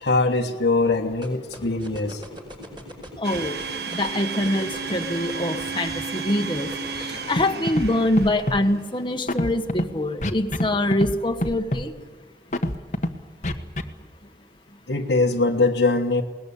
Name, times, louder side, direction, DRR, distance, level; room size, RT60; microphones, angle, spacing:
voice 1, 0.0-2.2 14.9-16.2, left 3 dB, 80° left, 0 dB, 1.6 m, -22 dB
sound 1, 1.2-7.4, equal, 30° right, 6.6 m, -39 dB
voice 2, 3.2-3.6 3.9-6.7 7.1-11.9, left 1 dB, 25° left, 6 dB, 1.5 m, -24 dB
Domestic sounds home sounds, 3.2-8.7, right 5 dB, 65° right, 1.5 m, -33 dB
Scratching (performance technique), 7.4-7.5 7.7-7.9 8.2-8.6 9.3-9.8 10.2-10.7 10.9-11.1 11.4-11.8 12.5-13.1 13.4-13.8, left 1 dB, 45° left, 1.4 m, -24 dB
21.0 x 20.0 x 8.5 m, 1.4 s
head